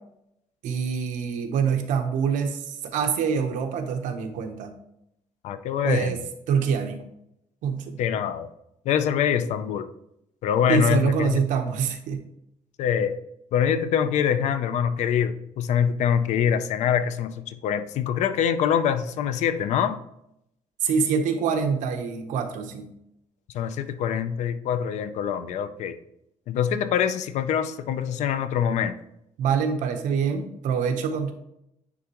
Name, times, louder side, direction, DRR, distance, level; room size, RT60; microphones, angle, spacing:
voice 1, 0.6-4.7 5.8-6.2 6.5-7.0 7.6-8.0 10.7-12.2 20.8-22.9 29.4-31.3, right 6 dB, 85° right, 5 dB, 0.9 m, -25 dB
voice 2, 5.4-6.2 8.0-8.5 8.9-9.9 10.4-11.4 12.8-13.2 13.5-20.0 23.5-26.0 26.5-29.0, left 8 dB, 65° left, 11 dB, 0.5 m, -24 dB
9.7 x 3.5 x 3.0 m, 0.80 s
cardioid pair, 180°, 13 cm